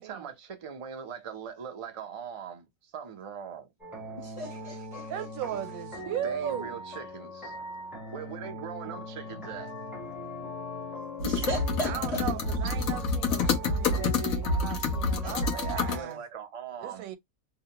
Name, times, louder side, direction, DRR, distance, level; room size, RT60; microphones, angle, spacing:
voice 1, 0.0-3.7 6.2-7.6 8.1-9.7 11.3-11.5 15.8-17.1, right 7 dB, 45° right, 0.4 m, -41 dB
sound 1, 3.8-16.0, right 1 dB, ahead, 0.6 m, -41 dB
voice 2, 4.2-5.1 11.2-12.2 15.2-15.4, equal, 40° left, 0.5 m, -35 dB
voice 3, 5.1-6.8 9.3-9.5 11.8-16.2 16.8-17.2, right 10 dB, 85° right, 1.0 m, -37 dB
sound 2, 8.9-14.3 14.5-14.6, left 8 dB, 65° left, 0.9 m, -44 dB
sound 3, 11.2-16.0, left 3 dB, 80° left, 1.2 m, -28 dB
2.9 x 2.1 x 2.8 m
omnidirectional pair, 1.4 m